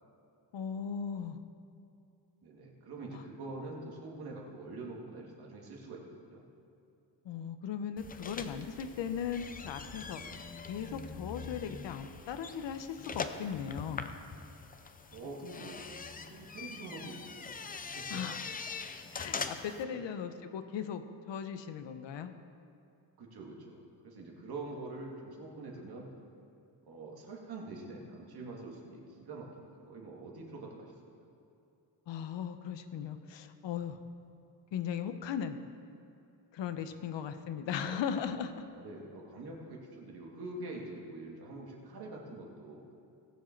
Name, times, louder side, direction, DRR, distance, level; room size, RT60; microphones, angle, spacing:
voice 1, 0.5-1.4 3.1-3.2 7.2-10.2 10.7-14.1 18.1-18.4 18.7-18.8 19.1-21.0 21.3-22.3 32.1-34.0 34.7-35.6 36.5-38.6, left 8 dB, 85° left, 8 dB, 0.9 m, -38 dB
voice 2, 2.4-6.4 15.1-15.8 16.3-17.7 17.9-18.2 19.8-20.0 23.2-26.1 26.9-30.9 37.8-38.0 38.7-42.8, right 2 dB, 60° right, -1 dB, 2.3 m, -45 dB
sound 1, 8.0-19.8, left 5 dB, 20° left, 0.4 m, -43 dB
19.0 x 7.4 x 4.5 m, 2.7 s
wide cardioid pair, 170°, 43 cm